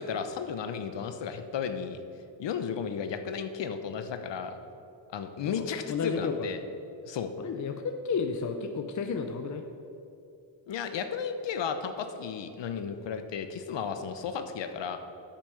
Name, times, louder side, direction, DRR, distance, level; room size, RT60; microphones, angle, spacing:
voice 1, 0.0-2.0 2.4-4.5 5.1-6.6 7.1-7.3 10.7-15.0, left 6 dB, 60° left, 9 dB, 1.0 m, -34 dB
voice 2, 5.6-6.5 7.4-9.6, left 5 dB, 40° left, 6 dB, 0.7 m, -32 dB
8.6 x 6.0 x 7.1 m, 2.7 s
cardioid pair, 75°, 48 cm